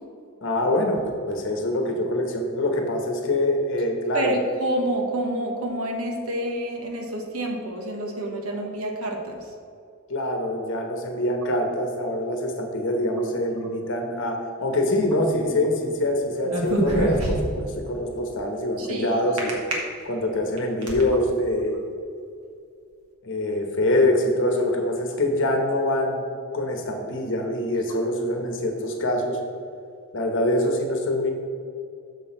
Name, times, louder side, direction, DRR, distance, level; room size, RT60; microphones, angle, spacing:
voice 1, 0.4-4.4 10.1-19.6 20.0-21.8 23.2-26.2 26.5-29.4 30.1-31.3, left 1 dB, 55° left, 3 dB, 1.1 m, -24 dB
voice 2, 4.1-9.4 18.8-19.2, right 1 dB, 70° right, 1 dB, 1.2 m, -28 dB
sound 1, 16.4-17.7 19.4-19.7 20.3-21.0, right 1 dB, 85° right, 1.7 m, -25 dB
7.0 x 6.2 x 4.3 m, 2.4 s
head